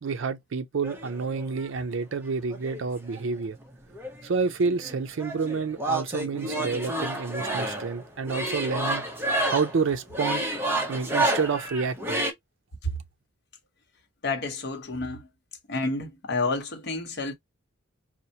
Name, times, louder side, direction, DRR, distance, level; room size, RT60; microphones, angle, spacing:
voice 1, 0.0-3.6 4.2-9.0 9.5-10.6 10.9-12.2, right 5 dB, 70° right, 0.5 m, -29 dB
sound 1, 0.8-1.7 2.5-3.7 3.9-12.3, right 1 dB, 10° right, 0.7 m, -30 dB
voice 2, 14.2-15.3 15.7-17.3, left 2 dB, 55° left, 0.9 m, -29 dB
4.3 x 2.1 x 2.7 m
head